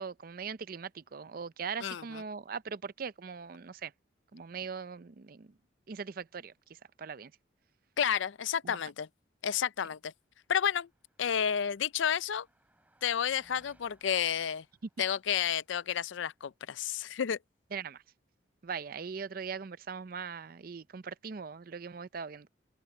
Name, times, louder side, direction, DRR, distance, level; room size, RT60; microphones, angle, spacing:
voice 1, 0.0-3.9 4.3-5.5 5.9-7.3 8.6-8.8 17.7-18.0 18.6-22.5, right 6 dB, 50° right, 0.5 m, -40 dB
voice 2, 1.8-2.2 8.0-9.1 9.4-10.1 10.5-10.9 11.2-12.5 13.0-14.6 15.0-17.4, left 8 dB, 75° left, 0.4 m, -31 dB
Car passing by, 10.4-16.3, right 1 dB, 10° right, 4.1 m, -68 dB
open air
head